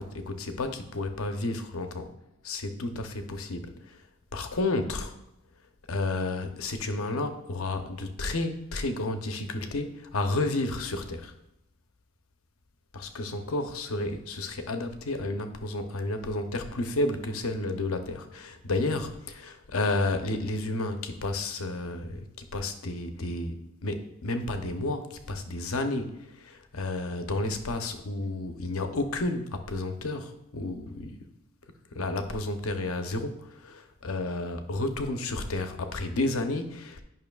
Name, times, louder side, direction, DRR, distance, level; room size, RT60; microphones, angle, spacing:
voice 1, 0.0-2.1 2.4-4.0 4.3-5.2 5.9-11.3 12.9-22.3 22.5-31.1 31.9-37.0, left 2 dB, 80° left, 7 dB, 0.7 m, -31 dB
9.4 x 5.6 x 2.3 m, 0.87 s
head